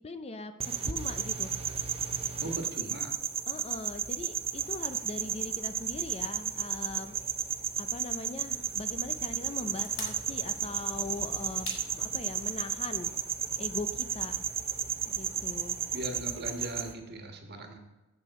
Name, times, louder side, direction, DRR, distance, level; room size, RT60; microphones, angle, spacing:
voice 1, 0.0-1.5 2.4-2.5 3.5-7.2 7.8-13.1 13.6-14.4 15.1-15.8, left 3 dB, 30° left, 9 dB, 0.5 m, -41 dB
sound 1, 0.6-16.9, right 7 dB, 25° right, 0.6 m, -33 dB
voice 2, 2.4-3.1 15.9-17.8, right 1 dB, 50° right, 3 dB, 1.5 m, -39 dB
sound 2, 9.7-14.2 14.5-14.6, left 4 dB, 65° left, 2.2 m, -47 dB
14.5 x 6.8 x 4.2 m, 1.1 s
head